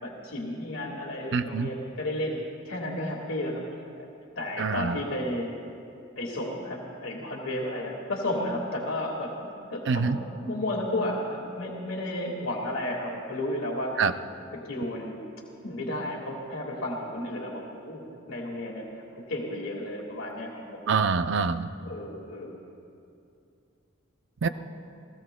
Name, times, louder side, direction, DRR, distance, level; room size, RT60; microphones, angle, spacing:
voice 1, 0.0-2.4 2.6-3.6 4.0-4.1 4.3-5.5 6.1-9.3 9.7-13.9 14.5-15.2 15.6-19.0 19.3-20.8 21.8-22.6 24.4-24.5, left 1 dB, 80° left, -3 dB, 1.7 m, -33 dB
voice 2, 1.3-1.7 4.6-5.0 9.9-10.2 14.0-14.1 20.9-21.7 24.4-24.5, right 5 dB, 60° right, 11 dB, 0.5 m, -25 dB
30.0 x 16.5 x 2.2 m, 2.6 s
head